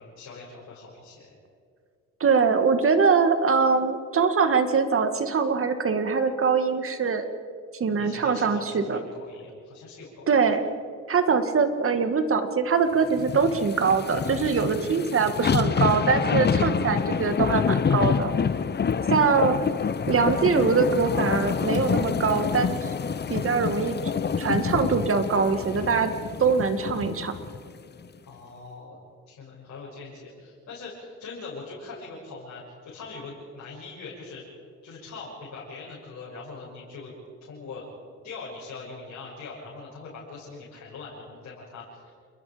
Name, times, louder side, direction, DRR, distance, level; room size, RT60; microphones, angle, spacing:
voice 1, 0.0-1.4 8.0-10.3 19.4-19.5 28.3-29.0 29.3-34.4 34.8-37.1 37.4-37.9 38.2-42.1, left 4 dB, 65° left, -5 dB, 7.0 m, -42 dB
voice 2, 2.2-7.3 7.7-9.0 10.3-10.6 11.1-18.3 19.1-19.6 20.1-22.9 23.3-24.0 24.4-26.1 26.4-27.4, right 5 dB, 45° right, 8 dB, 2.1 m, -23 dB
sound 1, 13.1-27.6 28.0-28.1, left 6 dB, 35° left, 0.9 m, -27 dB
28.5 x 21.5 x 5.2 m, 2.2 s
cardioid pair, 90°, 30 cm